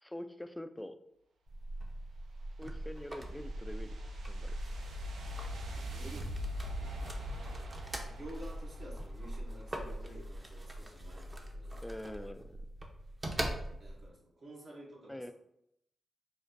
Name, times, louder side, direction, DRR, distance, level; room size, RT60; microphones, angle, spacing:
voice 1, 0.0-1.0 2.6-3.9 4.3-4.6 11.8-12.6 15.1-15.3, left 1 dB, 10° left, 9 dB, 0.3 m, -44 dB
sound 1, 1.5-14.1, right 1 dB, 35° right, 0.6 m, -43 dB
sound 2, 2.1-9.4, equal, 85° right, 0.4 m, -43 dB
sound 3, 3.4-12.0, left 1 dB, 80° left, 0.8 m, -48 dB
voice 2, 5.7-6.3 6.7-7.1 8.0-11.8 13.8-15.3, right 1 dB, 65° right, -4 dB, 0.8 m, -51 dB
5.0 x 2.1 x 2.5 m, 0.77 s
cardioid pair, 50°, 0 cm